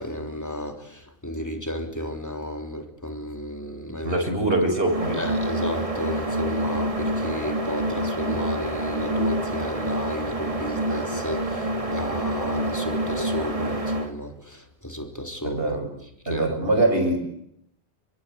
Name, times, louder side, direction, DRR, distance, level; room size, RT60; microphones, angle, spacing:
voice 1, 0.0-4.3 5.2-15.8 16.3-16.5, equal, 15° left, 3.5 m, -33 dB
voice 2, 4.0-5.2 15.4-15.9 16.3-17.2, right 2 dB, 60° right, 7.1 m, -23 dB
sound 1, 4.8-14.1, right 1 dB, 30° right, 2.2 m, -27 dB
26.0 x 23.5 x 8.3 m
omnidirectional pair, 1.1 m